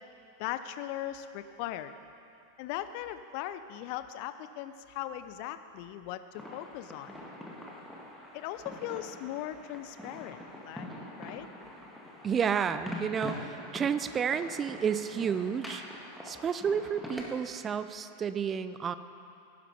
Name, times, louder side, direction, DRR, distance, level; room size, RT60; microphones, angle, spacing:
voice 1, 0.4-1.9 2.6-7.1 8.3-10.9 11.2-11.5, left 12 dB, 45° left, 11 dB, 0.7 m, -39 dB
sound 1, 6.3-17.2, left 1 dB, ahead, 2.0 m, -44 dB
voice 2, 12.2-15.8 16.2-18.9, right 7 dB, 25° right, 13 dB, 0.6 m, -31 dB
17.5 x 11.0 x 5.4 m, 2.6 s
figure-of-eight pair, 90°, 0 cm